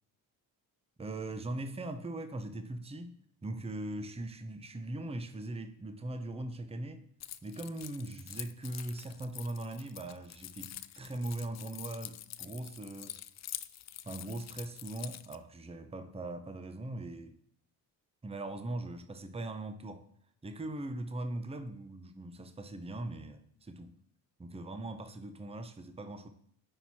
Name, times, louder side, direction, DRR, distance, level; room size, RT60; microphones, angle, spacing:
voice 1, 1.0-3.2 3.4-7.1 7.4-13.2 14.0-17.4 18.2-20.0 20.4-23.9 24.4-26.3, right 2 dB, 10° right, 9 dB, 0.7 m, -40 dB
Keys jangling, 7.2-15.4, left 11 dB, 35° left, 0.4 m, -46 dB
8.9 x 4.2 x 4.3 m, 0.69 s
hypercardioid pair, 50°, 49 cm